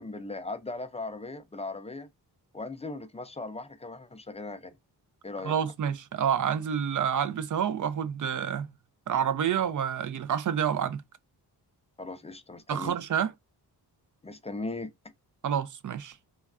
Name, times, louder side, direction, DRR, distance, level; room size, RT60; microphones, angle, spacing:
voice 1, 0.0-2.1 2.5-4.7 5.2-5.5 12.0-12.9 14.2-14.9, left 3 dB, 15° left, 0.3 m, -38 dB
voice 2, 5.4-8.7 9.1-11.0 12.7-13.3 15.4-16.1, right 8 dB, 50° right, 0.4 m, -28 dB
3.2 x 2.3 x 2.3 m
cardioid pair, 90°, 42 cm